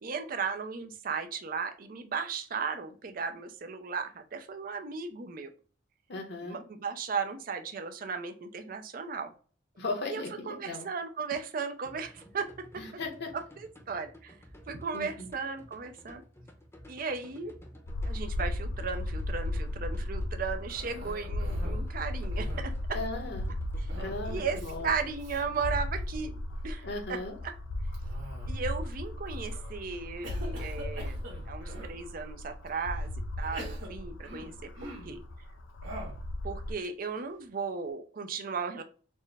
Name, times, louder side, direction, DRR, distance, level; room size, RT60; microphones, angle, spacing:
voice 1, 0.0-5.5 6.4-9.3 10.1-12.7 13.3-14.4 14.7-16.2 16.9-17.5 18.1-22.7 24.3-26.3 26.6-27.2 27.4-27.5 28.5-31.2 31.5-33.1 33.4-35.2 36.4-38.8, right 5 dB, 50° right, 7 dB, 0.5 m, -36 dB
voice 2, 6.1-6.6 9.8-10.9 12.8-13.3 14.9-15.3 22.9-23.5 24.0-24.9 26.8-27.4, left 2 dB, 60° left, 2 dB, 0.9 m, -37 dB
sound 1, 11.8-25.7, equal, 15° left, 0.7 m, -54 dB
sound 2, 17.9-36.7, left 1 dB, 85° left, 0.4 m, -36 dB
Cough, 20.7-21.9 22.2-22.9 23.9-24.3 24.5-24.8 25.2-25.4 26.0-26.4 27.9-28.7 29.3-29.7 30.2-32.0 32.7-32.8 33.4-35.2 35.8-36.3, right 1 dB, 80° right, 1.4 m, -45 dB
4.3 x 2.1 x 3.3 m, 0.40 s
head